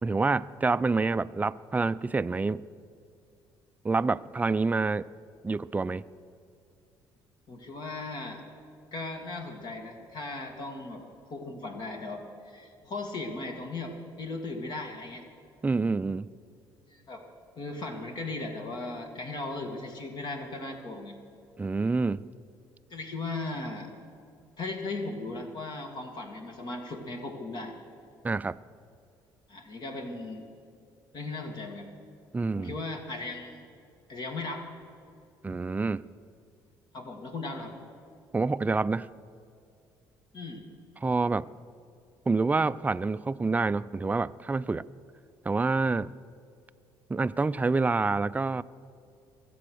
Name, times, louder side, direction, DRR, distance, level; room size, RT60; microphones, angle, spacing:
voice 1, 0.0-2.6 3.8-5.1 5.4-6.1 15.6-16.3 21.6-22.2 28.2-28.6 32.3-32.7 35.4-36.0 38.3-39.1 41.0-41.5 42.3-44.8 45.5-46.1 47.1-48.6, right 3 dB, 20° right, 16 dB, 0.4 m, -27 dB
voice 2, 7.5-8.4 8.9-11.0 11.3-15.2 16.9-17.2 17.6-21.2 22.9-23.9 24.6-27.7 29.5-30.5 31.1-31.9 32.5-33.7 34.1-34.6 36.9-37.8 40.3-40.6, left 2 dB, 55° left, 3 dB, 2.0 m, -37 dB
23.0 x 7.7 x 6.4 m, 2.5 s
supercardioid pair, 80°, 9 cm